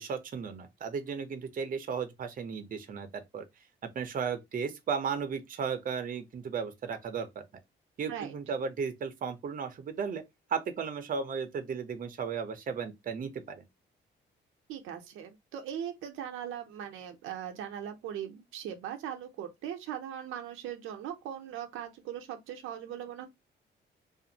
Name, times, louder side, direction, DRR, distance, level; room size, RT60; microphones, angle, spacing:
voice 1, 0.0-3.4 3.8-7.4 8.0-10.2 10.5-13.6, right 6 dB, 45° right, 0.7 m, -35 dB
voice 2, 14.7-23.3, right 9 dB, 90° right, 0.6 m, -39 dB
2.5 x 2.4 x 2.7 m
cardioid pair, 90°, 20 cm